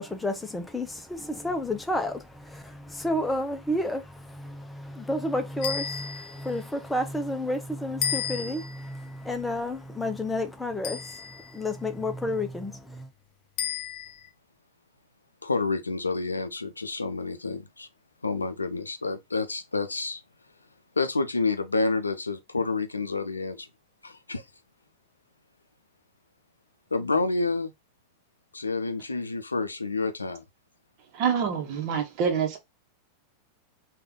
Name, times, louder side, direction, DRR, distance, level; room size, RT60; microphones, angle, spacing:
voice 1, 0.0-13.1, left 1 dB, 5° left, 0.7 m, -31 dB
sound 1, 5.6-6.5 8.0-8.9 10.8-11.6 13.6-14.3, left 8 dB, 45° left, 0.7 m, -33 dB
voice 2, 15.4-17.9 18.2-20.2 21.0-23.7 24.0-24.4 26.9-27.7 28.5-30.4, left 3 dB, 80° left, 0.5 m, -29 dB
voice 3, 31.1-32.6, right 7 dB, 45° right, 1.1 m, -26 dB
3.4 x 2.5 x 3.6 m
figure-of-eight pair, 90°, 0 cm